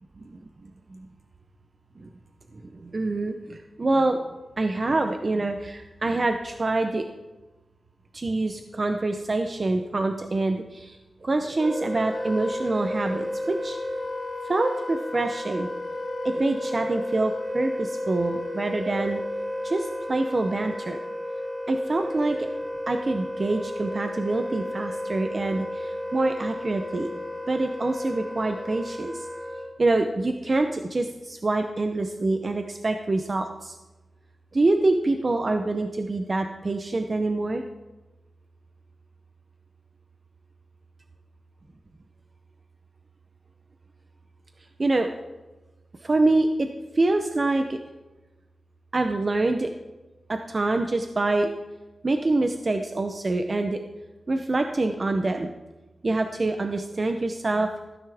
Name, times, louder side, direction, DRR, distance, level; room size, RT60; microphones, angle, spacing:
voice 1, 2.7-4.2 4.6-7.1 8.1-11.0 11.2-13.8 14.5-15.7 16.2-19.2 19.6-21.0 21.7-22.5 22.9-27.1 27.5-29.2 29.8-33.8 34.5-37.6 44.8-45.1 46.0-46.7 47.0-47.8 48.9-49.7 50.3-51.5 52.0-53.8 54.3-55.5 56.0-57.7, right 2 dB, 35° right, 6 dB, 0.7 m, -25 dB
Wind instrument woodwind instrument, 11.6-29.8, left 1 dB, 5° right, 1.9 m, -33 dB
15.5 x 9.9 x 3.5 m, 1.1 s
wide cardioid pair, 115°, 0 cm